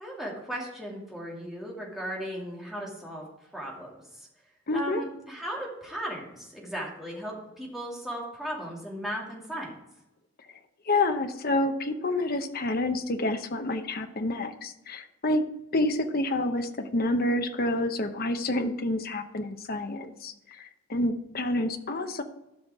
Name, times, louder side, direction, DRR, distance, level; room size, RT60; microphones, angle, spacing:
voice 1, 0.0-3.2 3.5-4.3 4.7-9.8, equal, ahead, -4 dB, 2.5 m, -36 dB
voice 2, 4.7-5.0 10.9-15.4 15.7-22.2, left 2 dB, 45° left, 7 dB, 0.9 m, -28 dB
12.5 x 5.8 x 4.8 m, 0.93 s
head